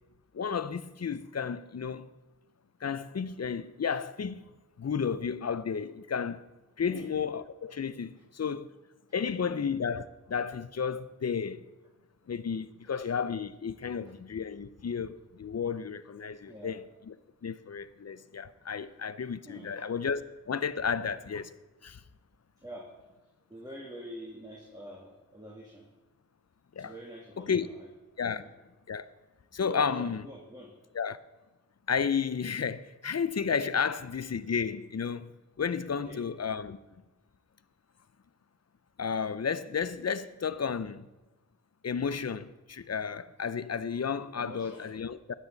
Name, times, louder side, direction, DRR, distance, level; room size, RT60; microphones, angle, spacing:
voice 1, 0.3-2.1 2.8-4.4 4.8-6.4 6.8-8.7 9.1-11.6 12.3-17.1 17.4-20.2 20.5-21.5 21.8-22.0 26.8-26.9 27.4-27.7 28.2-28.4 28.9-29.1 29.5-30.2 30.9-31.2 31.9-35.3 35.6-36.8 39.0-41.1 41.8-45.3, left 6 dB, 50° left, 0.6 m, -32 dB
voice 2, 13.8-14.1 16.4-16.8 19.5-19.8 21.0-21.1 22.6-22.9 23.5-25.9 26.8-27.9 28.3-28.5 29.6-30.7 36.1-36.2 44.4-44.9, equal, 10° right, 2.3 m, -46 dB
13.0 x 9.9 x 4.0 m
cardioid pair, 50°, 34 cm